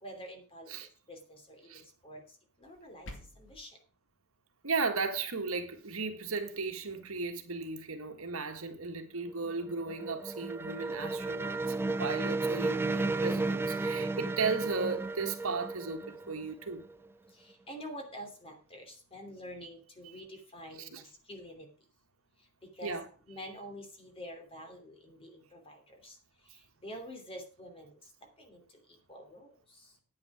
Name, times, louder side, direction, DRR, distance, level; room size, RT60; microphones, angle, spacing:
voice 1, 0.0-0.7 1.1-1.4 1.7-2.2 2.6-3.1 3.4-3.7 17.7-21.0 21.3-21.7 22.8-22.9 23.3-25.8 26.0-26.1 26.8-27.9 28.5-28.6 29.1-29.5, equal, 25° left, 2.9 m, -46 dB
sound 1, 2.6-3.6, left 1 dB, 60° left, 2.2 m, -49 dB
voice 2, 4.6-16.8 20.8-21.0 22.8-23.1, right 4 dB, 75° right, 1.7 m, -35 dB
sound 2, 9.3-17.1, right 3 dB, 10° right, 0.5 m, -33 dB
9.6 x 9.3 x 4.9 m
head